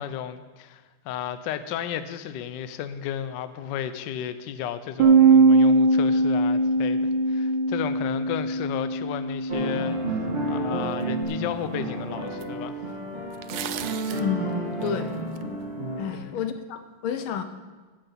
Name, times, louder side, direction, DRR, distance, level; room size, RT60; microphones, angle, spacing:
voice 1, 0.0-12.8 16.1-16.4, left 10 dB, 70° left, 11 dB, 1.2 m, -34 dB
Bass guitar, 5.0-11.2, right 3 dB, 70° right, 1.6 m, -21 dB
sound 1, 9.5-16.2, right 2 dB, 20° right, 2.5 m, -31 dB
sound 2, 11.3-11.4 12.4-12.5 13.3-14.3 14.8-15.4, right 11 dB, 85° right, 0.8 m, -36 dB
voice 2, 14.2-15.2 16.0-17.4, left 8 dB, 90° left, 9 dB, 1.7 m, -30 dB
15.0 x 6.7 x 5.6 m, 1.3 s
omnidirectional pair, 2.3 m